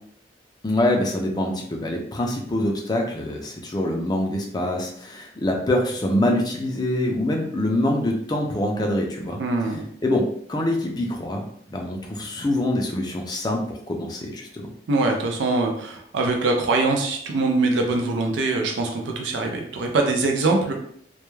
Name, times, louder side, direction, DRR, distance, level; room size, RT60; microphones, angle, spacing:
voice 1, 0.6-9.4 10.0-14.7, left 1 dB, 20° left, 1 dB, 0.4 m, -25 dB
voice 2, 9.4-9.9 14.9-20.7, right 3 dB, 80° right, 2 dB, 0.4 m, -23 dB
2.2 x 2.2 x 3.1 m, 0.65 s
head